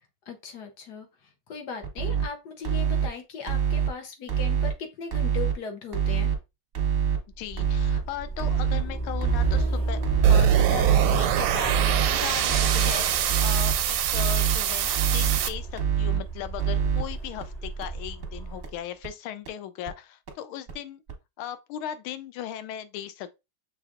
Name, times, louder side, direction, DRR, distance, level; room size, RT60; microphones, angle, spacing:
voice 1, 0.3-6.3, left 5 dB, 65° left, 1.1 m, -38 dB
sound 1, 1.8-2.3 2.6-3.1 3.5-3.9 4.3-4.7 5.1-5.5 5.9-6.4 6.7-7.2 7.6-8.0 8.4-8.8 9.2-9.6 10.0-10.5 10.9-11.3 11.7-12.1 12.5-12.9 13.3-13.7 14.1-14.6 15.0-15.4 15.8-16.2 16.6-17.0 17.4-17.5 17.8-17.9 18.2-18.3 18.6-18.7 19.0-19.1 19.5-19.6 19.9-20.0 20.3-20.4 20.7-20.8 21.1-21.2, right 8 dB, 45° right, 0.8 m, -25 dB
Truck, 7.3-18.7, right 2 dB, 25° left, 1.1 m, -34 dB
voice 2, 7.4-21.0 21.4-23.3, left 11 dB, 85° left, 1.4 m, -37 dB
sound 2, 10.2-15.5, right 10 dB, 85° right, 1.5 m, -24 dB
6.2 x 3.3 x 2.4 m
omnidirectional pair, 2.3 m